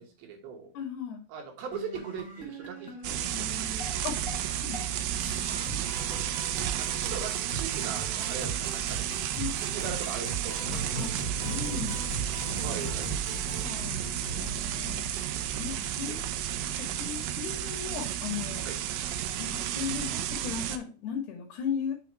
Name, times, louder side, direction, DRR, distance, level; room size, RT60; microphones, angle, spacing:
voice 1, 0.0-0.7 1.3-3.4 5.5-5.7 6.8-9.1 9.5-11.1 12.6-13.1 16.1-16.2 18.7-18.8, right 6 dB, 70° right, 3 dB, 2.9 m, -40 dB
voice 2, 0.7-1.2 4.0-4.8 5.7-5.8 9.4-9.6 11.0-11.1 11.4-12.7 13.6-15.1 15.6-16.2 16.5-18.7 19.4-21.9, left 7 dB, 75° left, 3 dB, 3.2 m, -37 dB
sound 1, 1.7-4.4 4.7-4.9 5.2-13.7, right 4 dB, 5° left, 1.4 m, -40 dB
sound 2, 3.0-20.8, right 11 dB, 90° right, 2.0 m, -32 dB
sound 3, 9.3-15.4, right 2 dB, 10° right, 1.5 m, -39 dB
7.1 x 3.6 x 4.6 m, 0.34 s
omnidirectional pair, 4.7 m